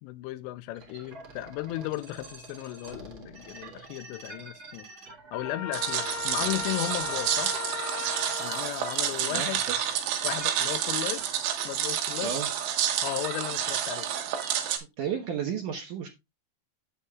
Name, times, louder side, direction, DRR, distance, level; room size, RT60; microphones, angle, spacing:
voice 1, 0.0-4.9 5.3-7.5 8.4-9.6 10.2-11.3 11.6-12.3 13.0-14.1, left 16 dB, 85° left, 2.8 m, -35 dB
sound 1, 0.7-11.5, right 3 dB, 50° right, 1.4 m, -47 dB
Trumpet, 5.3-8.7, left 6 dB, 65° left, 2.6 m, -36 dB
sound 2, 5.7-14.8, right 10 dB, 90° right, 3.6 m, -29 dB
voice 2, 9.3-9.9 12.2-12.5 15.0-16.1, right 7 dB, 70° right, 2.0 m, -33 dB
10.0 x 8.5 x 2.3 m
omnidirectional pair, 5.0 m